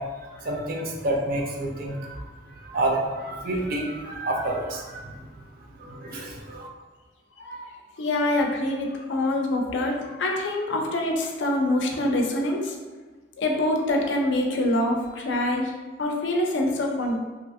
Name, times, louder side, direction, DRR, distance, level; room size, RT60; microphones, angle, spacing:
voice 1, 0.0-2.2 2.5-5.3 5.8-6.7, right 1 dB, 50° right, 0 dB, 0.4 m, -29 dB
voice 2, 8.0-12.8 13.4-15.7 16.0-17.2, left 1 dB, 70° left, 1 dB, 0.4 m, -25 dB
2.8 x 2.4 x 2.5 m, 1.4 s
head